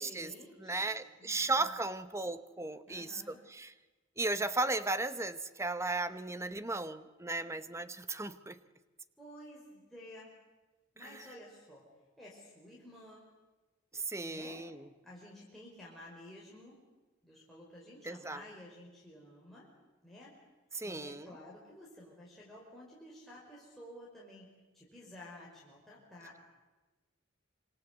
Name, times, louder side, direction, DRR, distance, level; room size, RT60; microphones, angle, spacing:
voice 1, 0.0-1.7 2.9-3.4 9.2-10.3 10.9-11.8 12.2-13.3 14.3-14.6 15.0-16.8 17.2-19.7 20.0-20.3 20.8-24.5 24.7-26.4, left 1 dB, ahead, -6 dB, 5.0 m, -52 dB
voice 2, 0.6-3.7 4.2-8.6 11.0-11.2 13.9-14.8 18.0-18.4 20.7-21.3, right 2 dB, 15° right, 12 dB, 1.0 m, -36 dB
26.5 x 25.0 x 8.2 m, 1.2 s
head